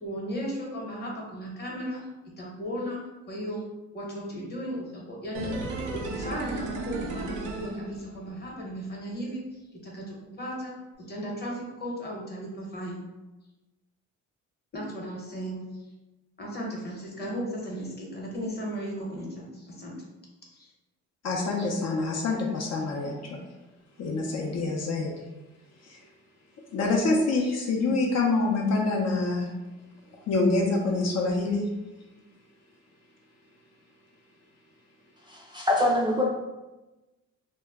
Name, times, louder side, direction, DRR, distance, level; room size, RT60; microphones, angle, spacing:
voice 1, 0.0-2.0 2.4-3.0 3.3-3.6 3.9-5.5 5.9-9.4 9.8-13.1 14.7-15.6 16.4-19.9 20.5-20.7, equal, 35° left, -2 dB, 0.9 m, -35 dB
sound 1, 5.3-8.5 8.8-8.9, right 3 dB, 90° right, 0.5 m, -35 dB
voice 2, 21.2-23.4 24.0-25.1 25.8-26.0 26.7-29.5 30.1-31.6, left 3 dB, 60° left, -1 dB, 0.6 m, -26 dB
voice 3, 35.3-36.3, left 1 dB, 15° right, -2 dB, 0.3 m, -24 dB
2.2 x 2.1 x 3.5 m, 1.1 s
cardioid pair, 90°, 30 cm